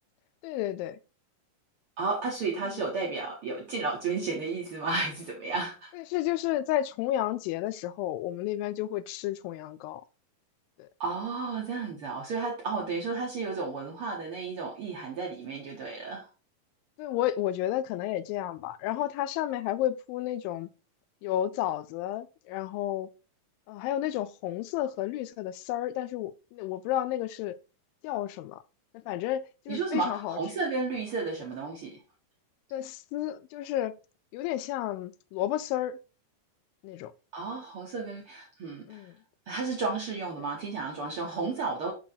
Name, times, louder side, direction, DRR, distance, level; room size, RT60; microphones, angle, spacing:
voice 1, 0.4-1.0 6.1-10.0 10.8-10.9 17.0-20.7 21.2-23.1 23.7-27.6 28.0-28.6 29.1-30.4 32.7-34.0 34.3-36.0 36.8-37.1 38.9-39.1, left 12 dB, 90° left, 2.3 m, -31 dB
voice 2, 2.0-5.9 11.0-16.3 29.7-32.0 37.3-39.1 39.5-41.9, right 4 dB, 70° right, 1.3 m, -33 dB
5.9 x 4.7 x 4.0 m
omnidirectional pair, 4.0 m